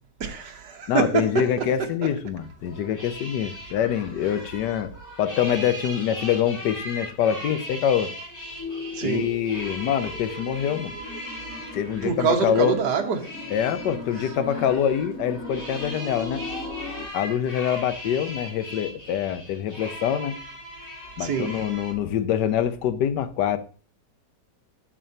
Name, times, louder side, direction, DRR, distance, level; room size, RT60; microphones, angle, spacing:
voice 1, 0.2-1.7 8.9-9.3 12.0-13.3 21.2-21.5, right 6 dB, 70° right, 1.7 m, -25 dB
voice 2, 0.9-4.9 5.2-8.1 9.0-10.9 11.7-12.8 13.5-16.4 17.1-20.3 21.2-23.6, left 9 dB, 75° left, 1.3 m, -25 dB
sound 1, 2.4-21.9, equal, 10° left, 3.1 m, -39 dB
sound 2, 8.6-17.1, left 3 dB, 50° left, 3.2 m, -38 dB
9.9 x 7.3 x 2.8 m
omnidirectional pair, 1.9 m